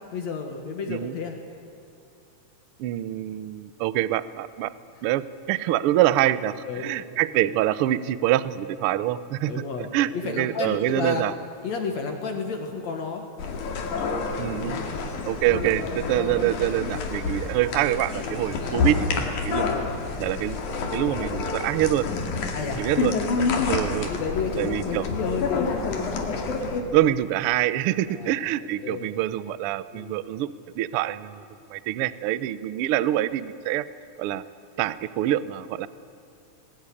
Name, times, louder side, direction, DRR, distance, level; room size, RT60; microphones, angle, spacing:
voice 1, 0.1-1.4 6.7-7.1 9.5-11.2 11.6-13.2 14.9-15.0 18.6-19.3 19.7-19.9 22.5-22.8 23.5-23.7 24.1-26.1 28.1-29.1 29.9-30.2, left 5 dB, 65° left, 3 dB, 2.9 m, -32 dB
voice 2, 2.8-4.7 5.0-9.5 9.9-11.3 14.4-14.8 15.3-19.7 20.2-20.6 20.9-22.1 22.8-24.1 24.6-25.0 26.9-30.5 30.7-31.4 31.7-33.8 34.2-34.4 34.8-35.9, right 13 dB, 80° right, 16 dB, 1.2 m, -25 dB
sound 1, 13.4-26.8, left 4 dB, 80° left, 3.6 m, -28 dB
20.0 x 20.0 x 9.9 m, 2.7 s
omnidirectional pair, 3.5 m